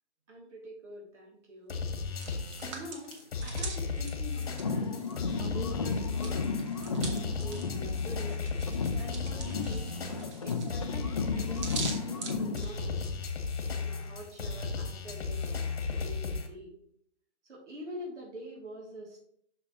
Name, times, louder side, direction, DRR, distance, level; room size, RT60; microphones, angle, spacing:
voice 1, 0.3-1.8 2.6-3.1 3.4-5.0 5.4-8.5 9.0-9.9 10.4-13.1 13.7-16.7 17.5-19.2, equal, 75° right, -3 dB, 2.9 m, -45 dB
sound 1, 1.7-16.5, left 4 dB, 55° left, 1.6 m, -35 dB
Hands, 1.9-5.6 5.9-13.2, right 4 dB, 25° right, 0.9 m, -44 dB
sound 2, 4.5-8.4 8.7-12.7, left 4 dB, 30° left, 0.4 m, -34 dB
6.8 x 6.1 x 3.0 m, 0.68 s
hypercardioid pair, 150°, 35 cm